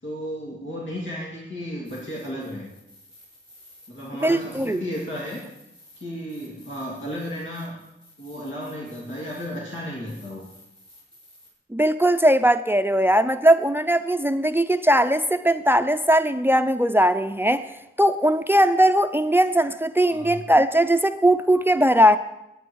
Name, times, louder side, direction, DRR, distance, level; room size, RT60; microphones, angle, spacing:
voice 1, 0.0-2.7 3.9-5.4 6.0-7.8 8.2-10.5 20.1-20.4, equal, 80° left, 3.1 m, -34 dB
sound 1, 1.8-11.5, left 1 dB, 35° left, 5.5 m, -53 dB
voice 2, 4.2-4.8 11.7-17.7 18.0-22.2, right 1 dB, 10° right, 0.5 m, -19 dB
20.5 x 8.7 x 4.7 m
wide cardioid pair, 75°, 19 cm